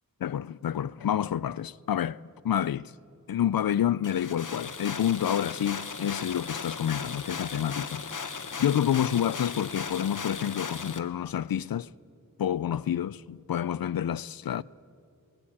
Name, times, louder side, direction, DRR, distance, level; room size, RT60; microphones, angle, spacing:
voice 1, 0.2-2.2 2.4-2.9 3.3-11.9 12.4-14.6, left 10 dB, 85° left, 0.5 m, -28 dB
sound 1, 4.0-11.0, left 5 dB, 60° left, 1.2 m, -37 dB
20.5 x 17.5 x 8.6 m
wide cardioid pair, 80°, 34 cm